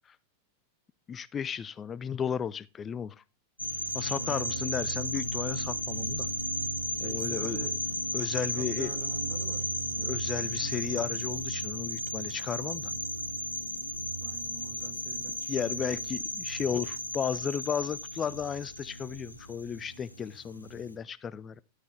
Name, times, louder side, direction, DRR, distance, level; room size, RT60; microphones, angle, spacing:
voice 1, 1.1-3.2 3.9-6.3 7.0-7.7 8.1-8.9 10.0-12.9 15.5-21.6, left 7 dB, 20° left, 0.3 m, -34 dB
sound 1, 3.6-20.9, equal, 85° left, 1.0 m, -34 dB
voice 2, 4.2-5.0 7.0-7.8 8.4-9.7 14.2-16.3, right 6 dB, 55° right, 1.9 m, -45 dB
11.0 x 6.3 x 3.2 m
figure-of-eight pair, 90°, 0 cm